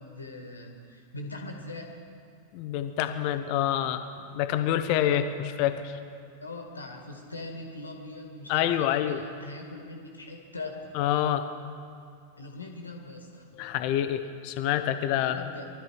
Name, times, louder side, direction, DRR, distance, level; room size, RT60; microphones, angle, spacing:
voice 1, 0.0-1.9 6.4-10.8 12.4-13.5 15.2-15.7, left 2 dB, 80° left, 2 dB, 2.0 m, -41 dB
voice 2, 2.5-4.0 4.3-6.0 8.5-9.2 11.0-11.5 13.6-15.4, left 11 dB, 45° left, 9 dB, 1.0 m, -27 dB
20.0 x 12.5 x 4.8 m, 2.4 s
figure-of-eight pair, 90°, 0 cm